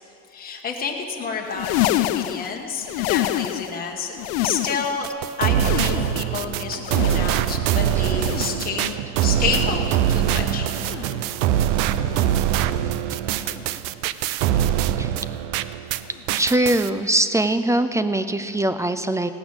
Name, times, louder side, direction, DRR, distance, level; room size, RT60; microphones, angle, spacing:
voice 1, 0.3-5.1 5.4-10.7, left 5 dB, 25° left, 0 dB, 1.3 m, -29 dB
sound 1, 1.4-3.8 4.1-5.1 5.4-6.4 6.8-7.6 8.1-8.8 9.4-10.1 10.7-11.3 12.0-12.6 13.4-13.8 14.7-15.0 16.0-16.2 17.4-17.5, left 15 dB, 85° left, 0.5 m, -28 dB
sound 2, 5.0-16.0 16.3-16.9, right 11 dB, 80° right, 0.6 m, -23 dB
voice 2, 16.4-19.3, right 1 dB, 10° right, 11 dB, 0.3 m, -21 dB
16.5 x 6.1 x 8.8 m, 2.7 s
supercardioid pair, 110°, 38 cm